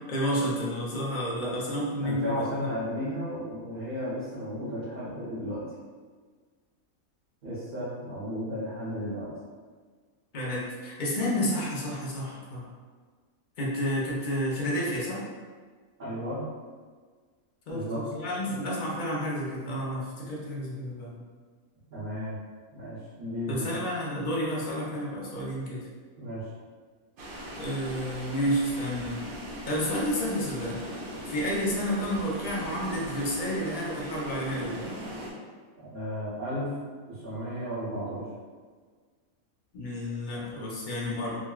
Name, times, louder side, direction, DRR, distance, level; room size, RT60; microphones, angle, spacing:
voice 1, 0.1-2.5 10.3-12.7 13.6-15.2 17.7-21.1 23.5-25.8 27.6-29.2 29.7-30.8 31.3-34.9 39.7-41.4, equal, 50° left, -5 dB, 0.6 m, -30 dB
voice 2, 2.0-5.6 7.4-9.3 16.0-16.4 17.7-18.0 18.4-18.6 21.9-22.3 22.7-23.8 26.2-26.5 35.8-36.7 37.1-38.2, equal, 45° right, -12 dB, 0.8 m, -34 dB
sound 1, 27.2-35.3, equal, 70° right, 0.5 m, -39 dB
3.7 x 2.1 x 2.3 m, 1.5 s
omnidirectional pair, 1.5 m